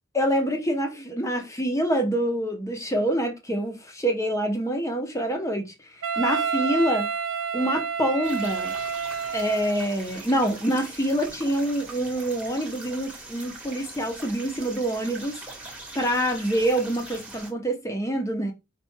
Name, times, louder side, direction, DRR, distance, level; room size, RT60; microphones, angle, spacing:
voice 1, 0.1-5.7 6.2-7.1 7.5-8.7 9.3-15.4 15.9-18.5, right 1 dB, 15° left, 0.8 m, -26 dB
Wind instrument woodwind instrument, 6.0-9.9, right 6 dB, 85° right, 0.5 m, -29 dB
sound 1, 8.2-17.5, right 2 dB, 5° right, 1.2 m, -42 dB
4.7 x 2.5 x 4.4 m
head